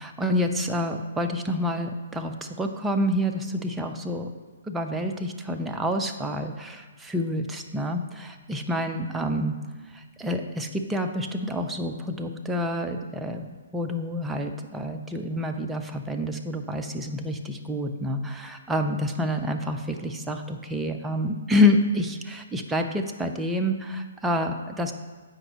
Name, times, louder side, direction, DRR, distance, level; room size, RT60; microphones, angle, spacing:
voice 1, 0.0-4.3 4.7-9.6 9.9-24.9, left 1 dB, 5° right, 4 dB, 0.4 m, -28 dB
7.7 x 4.9 x 3.0 m, 1.4 s
figure-of-eight pair, 125°, 0 cm